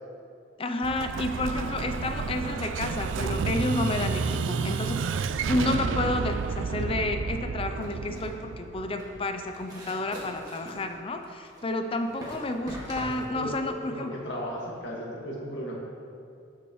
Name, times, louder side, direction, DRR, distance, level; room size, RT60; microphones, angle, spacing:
voice 1, 0.6-5.0 5.5-14.2, left 2 dB, 30° left, 6 dB, 0.5 m, -30 dB
Explosion, 0.8-9.5, right 5 dB, 80° right, 0.4 m, -30 dB
sound 1, 7.7-14.8, equal, 20° right, 1.8 m, -43 dB
voice 2, 13.9-15.7, equal, 65° left, -4 dB, 1.9 m, -35 dB
16.5 x 6.0 x 3.1 m, 2.4 s
head